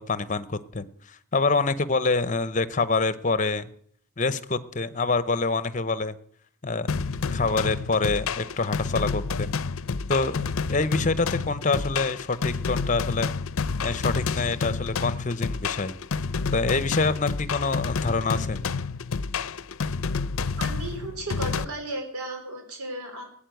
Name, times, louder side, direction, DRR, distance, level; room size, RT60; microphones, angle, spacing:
voice 1, 0.0-3.7 4.2-6.2 6.6-9.5 10.1-10.4 10.7-13.3 13.8-16.0 16.5-18.6, left 3 dB, 35° left, 15 dB, 0.7 m, -26 dB
sound 1, 6.9-21.6, left 4 dB, 70° left, 0.6 m, -29 dB
voice 2, 20.6-23.2, right 2 dB, 90° right, 3 dB, 4.0 m, -34 dB
16.5 x 8.8 x 9.1 m, 0.62 s
head